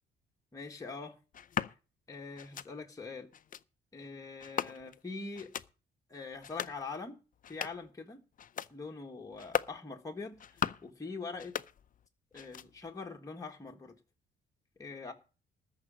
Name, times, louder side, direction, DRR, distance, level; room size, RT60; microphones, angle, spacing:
voice 1, 0.5-1.2 2.1-3.3 3.9-5.5 6.1-7.2 7.5-8.2 8.7-11.6 12.3-14.0 14.8-15.1, left 4 dB, 15° left, 1.6 m, -43 dB
sound 1, 1.3-1.7 2.4-2.7 3.3-3.6 4.4-5.0 5.3-5.7 6.3-6.8 7.3-7.9 8.4-8.7 9.3-9.8 10.3-10.9 11.3-12.1 12.3-12.9, left 9 dB, 45° left, 0.5 m, -38 dB
13.5 x 5.1 x 8.7 m
cardioid pair, 90°, 20 cm